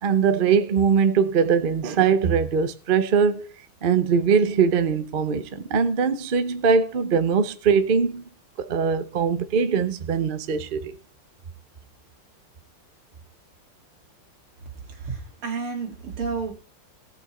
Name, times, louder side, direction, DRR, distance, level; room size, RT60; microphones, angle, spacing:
voice 1, 0.0-3.5 3.8-8.3 8.6-11.0, right 6 dB, 65° right, 0.5 m, -21 dB
voice 2, 15.0-16.5, right 5 dB, 80° right, 3.2 m, -31 dB
17.0 x 6.0 x 4.3 m
omnidirectional pair, 2.4 m